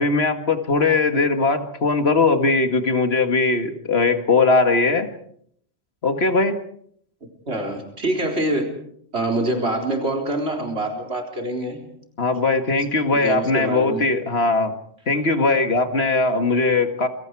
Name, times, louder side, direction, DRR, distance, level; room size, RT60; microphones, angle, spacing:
voice 1, 0.0-5.1 6.0-6.6 12.2-14.7 15.1-17.1, left 3 dB, 70° left, 7 dB, 2.1 m, -20 dB
voice 2, 7.5-8.7 9.1-11.8 13.1-14.0, right 1 dB, 75° right, 2 dB, 4.4 m, -25 dB
29.0 x 23.0 x 4.8 m, 0.67 s
omnidirectional pair, 1.1 m